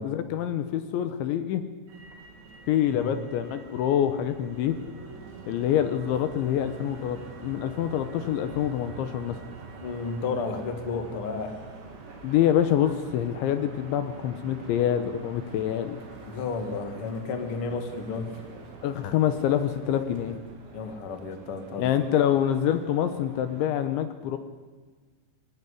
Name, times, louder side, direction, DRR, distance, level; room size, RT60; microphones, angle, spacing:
voice 1, 0.0-1.6 2.7-4.8 5.5-9.4 12.2-16.0 18.8-20.4 21.8-24.4, left 10 dB, 75° left, 10 dB, 3.2 m, -26 dB
Motor vehicle (road), 1.9-20.4, right 4 dB, 60° right, 5.8 m, -46 dB
sound 1, 6.6-23.7, right 3 dB, 40° right, 2.2 m, -50 dB
voice 2, 9.8-11.6 16.2-18.3 20.7-21.9, left 4 dB, 45° left, 6 dB, 1.9 m, -32 dB
25.0 x 16.5 x 10.0 m, 1.4 s
omnidirectional pair, 5.8 m